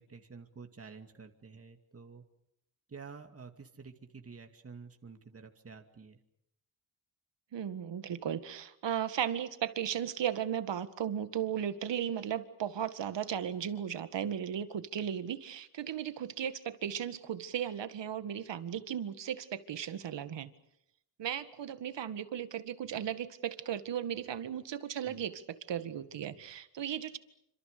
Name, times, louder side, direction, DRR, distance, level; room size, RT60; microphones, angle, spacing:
voice 1, 0.0-2.3 2.9-6.2 25.0-25.2, right 5 dB, 30° right, 5 dB, 2.4 m, -50 dB
voice 2, 7.5-20.5 21.2-27.2, right 9 dB, 75° right, 11 dB, 1.9 m, -36 dB
27.5 x 26.5 x 6.8 m, 0.78 s
cardioid pair, 95°, 44 cm